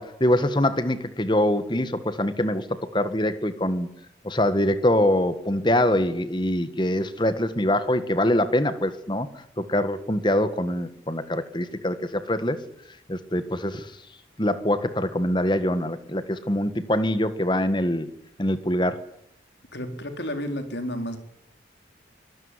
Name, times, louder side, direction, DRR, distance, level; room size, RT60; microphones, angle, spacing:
voice 1, 0.0-3.9 4.2-9.3 9.6-12.6 13.1-13.9 14.4-18.1 18.4-19.0, left 1 dB, 25° left, 12 dB, 1.7 m, -24 dB
voice 2, 19.7-21.2, equal, 65° left, 7 dB, 4.1 m, -31 dB
24.5 x 20.0 x 9.9 m, 0.76 s
head